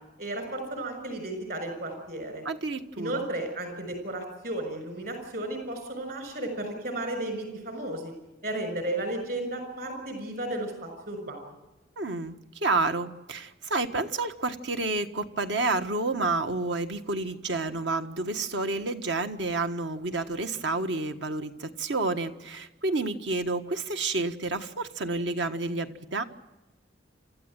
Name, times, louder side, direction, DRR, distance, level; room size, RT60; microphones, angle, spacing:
voice 1, 0.2-2.4 3.0-8.1 8.4-11.4, right 1 dB, 55° right, 7 dB, 6.3 m, -34 dB
voice 2, 2.4-3.3 12.0-26.2, right 3 dB, 80° right, 8 dB, 1.5 m, -30 dB
29.0 x 14.0 x 9.1 m, 1.0 s
head